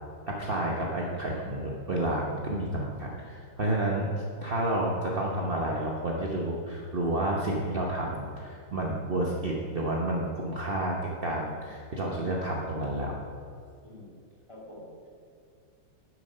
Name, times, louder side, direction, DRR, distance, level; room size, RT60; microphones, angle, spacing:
voice 1, 0.3-4.1 4.4-13.2, right 1 dB, 55° right, -2 dB, 0.6 m, -30 dB
voice 2, 13.8-14.1 14.5-15.1, left 1 dB, 15° left, -4 dB, 2.0 m, -47 dB
9.6 x 7.4 x 5.4 m, 2.3 s
omnidirectional pair, 2.4 m